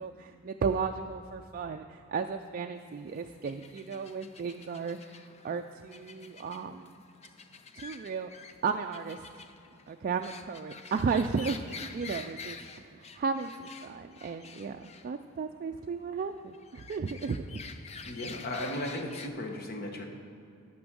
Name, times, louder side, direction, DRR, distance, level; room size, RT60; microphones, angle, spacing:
voice 1, 0.0-5.2 5.4-7.0 7.8-8.3 8.6-9.3 9.9-17.6, right 5 dB, 40° right, 5 dB, 0.3 m, -34 dB
sound 1, 2.8-19.3, left 5 dB, 30° left, 0.5 m, -48 dB
voice 2, 18.0-20.1, left 1 dB, 45° left, 2 dB, 1.3 m, -36 dB
12.0 x 6.1 x 6.2 m, 2.6 s
head